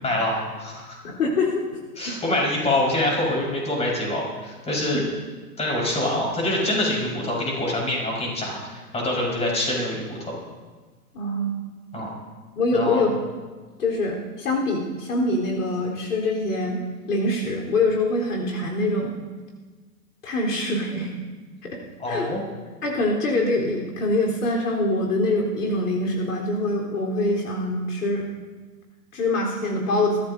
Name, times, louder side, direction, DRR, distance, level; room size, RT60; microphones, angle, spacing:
voice 1, 0.0-1.0 2.0-5.0 5.6-10.4 11.9-12.1 12.7-13.0 22.0-22.4, left 1 dB, 15° left, -3 dB, 5.2 m, -25 dB
voice 2, 1.0-1.6 2.0-2.1 4.9-5.2 11.1-11.6 12.6-13.1 13.8-16.8 17.1-19.2 20.2-21.1 21.6-21.8 22.1-22.3 22.8-28.3 29.1-30.2, left 2 dB, 70° left, -1 dB, 4.2 m, -24 dB
22.5 x 15.0 x 2.8 m, 1.3 s
hypercardioid pair, 120°, 47 cm